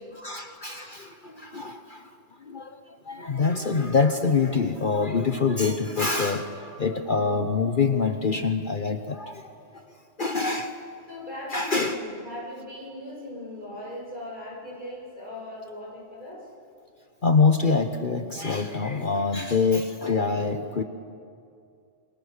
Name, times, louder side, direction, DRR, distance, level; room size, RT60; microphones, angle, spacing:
voice 1, 0.2-2.1 2.4-9.9 10.2-10.7 11.5-12.0 17.2-20.8, left 4 dB, 45° left, 7 dB, 1.1 m, -25 dB
voice 2, 11.1-16.5, left 1 dB, 40° right, -4 dB, 8.2 m, -39 dB
28.5 x 25.0 x 6.6 m, 2.4 s
omnidirectional pair, 1.3 m